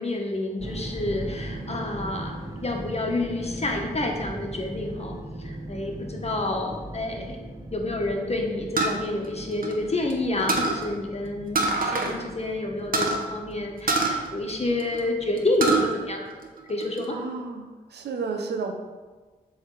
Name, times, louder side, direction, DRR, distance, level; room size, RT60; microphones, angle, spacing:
voice 1, 0.0-2.3 2.6-5.1 5.4-7.4 7.7-16.4 16.7-17.2, left 2 dB, 40° left, 1 dB, 1.4 m, -29 dB
sound 1, 0.6-16.5, right 1 dB, 20° right, 0.9 m, -39 dB
sound 2, 8.8-10.1 10.5-10.8 11.5-12.2 12.4-12.5 12.9-13.2 13.9-15.0 15.4-15.9 16.3-17.0, right 3 dB, 55° right, 1.1 m, -25 dB
voice 2, 17.1-18.7, right 4 dB, 80° right, 4 dB, 0.8 m, -32 dB
7.3 x 3.6 x 4.9 m, 1.3 s
supercardioid pair, 40°, 17 cm